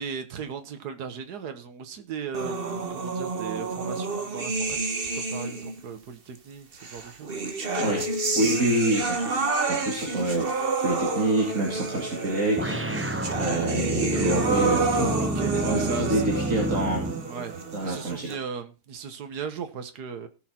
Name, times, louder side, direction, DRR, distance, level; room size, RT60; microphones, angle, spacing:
voice 1, 0.0-7.3 15.2-16.2 17.2-20.3, right 6 dB, 85° right, 1.7 m, -37 dB
sound 1, 2.3-5.8 6.8-18.4, right 3 dB, 40° right, 1.4 m, -29 dB
Telephone, 7.0-7.1 7.7-12.6 13.1-13.2 13.6-13.7 14.1-14.4 14.7-14.8, left 6 dB, 75° left, 3.2 m, -38 dB
voice 2, 8.3-12.8 13.4-17.1 17.7-18.3, right 1 dB, 55° right, 2.7 m, -27 dB
sound 2, 12.6-17.3, right 1 dB, 15° right, 0.4 m, -29 dB
17.5 x 6.2 x 4.3 m
omnidirectional pair, 1.7 m